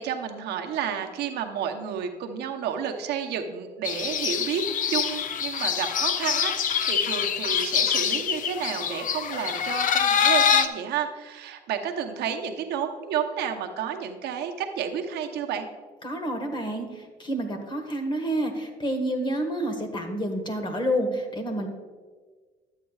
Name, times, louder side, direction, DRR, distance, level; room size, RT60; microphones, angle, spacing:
voice 1, 0.0-15.7, right 8 dB, 75° right, 4 dB, 0.9 m, -31 dB
sound 1, 3.8-10.7, left 7 dB, 50° left, 0.6 m, -25 dB
voice 2, 16.0-21.7, right 1 dB, 30° left, 5 dB, 1.5 m, -29 dB
12.5 x 8.3 x 2.4 m, 1.4 s
cardioid pair, 110°, 17 cm